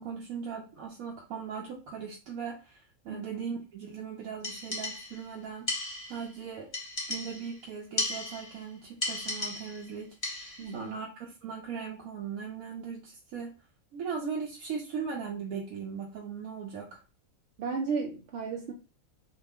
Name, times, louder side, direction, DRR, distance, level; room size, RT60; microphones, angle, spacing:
voice 1, 0.0-5.7 6.1-6.7 7.1-13.5 13.9-17.0, right 6 dB, 80° right, -1 dB, 1.1 m, -39 dB
sound 1, 4.4-5.3 5.7-6.3 6.7-7.6 8.0-8.6 9.0-9.9 10.2-10.7, left 2 dB, 30° left, 0.8 m, -35 dB
voice 2, 10.6-10.9 17.6-18.7, right 5 dB, 65° right, 0 dB, 0.7 m, -34 dB
2.7 x 2.4 x 3.5 m, 0.33 s
omnidirectional pair, 1.5 m